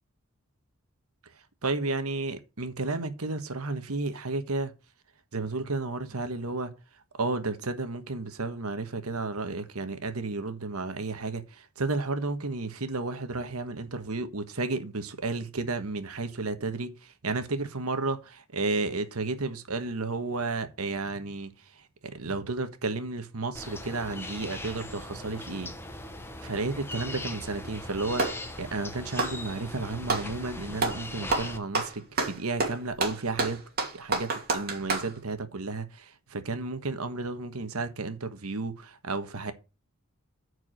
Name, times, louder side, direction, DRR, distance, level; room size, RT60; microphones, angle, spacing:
voice 1, 1.6-4.7 5.3-6.7 7.2-25.7 26.4-33.6 33.9-39.5, right 3 dB, 90° right, 1.4 m, -32 dB
sound 1, 23.5-31.6, left 1 dB, 10° left, 1.1 m, -40 dB
Clapping, 27.7-28.5 29.1-30.3 30.8-31.0 31.3-35.1, right 3 dB, 45° right, 2.6 m, -29 dB
9.1 x 4.9 x 6.3 m
head